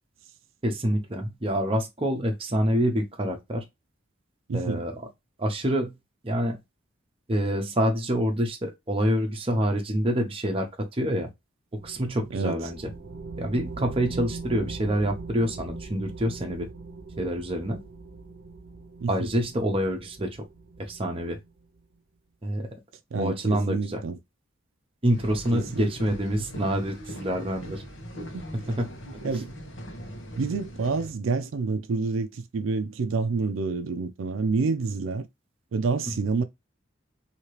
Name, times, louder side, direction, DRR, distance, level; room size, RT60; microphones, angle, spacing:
voice 1, 0.6-3.6 4.5-4.9 5.4-5.9 6.2-6.6 7.3-10.7 11.0-11.3 11.8-12.9 13.4-16.7 17.2-17.8 19.1-20.3 20.8-21.4 22.4-22.7 23.1-24.0 25.0-27.8 28.8-28.9, equal, 30° right, 0.8 m, -26 dB
voice 2, 4.5-4.8 12.3-12.7 19.0-19.1 23.1-24.2 25.5-25.9 26.5-26.7 27.6-27.7 28.3-28.4 29.2-29.5 30.4-35.3 35.7-36.4, right 4 dB, 90° right, 0.4 m, -28 dB
sound 1, 11.8-21.8, right 3 dB, 60° right, 0.8 m, -41 dB
sound 2, 25.1-31.1, equal, 70° left, 1.1 m, -40 dB
2.9 x 2.8 x 3.1 m
head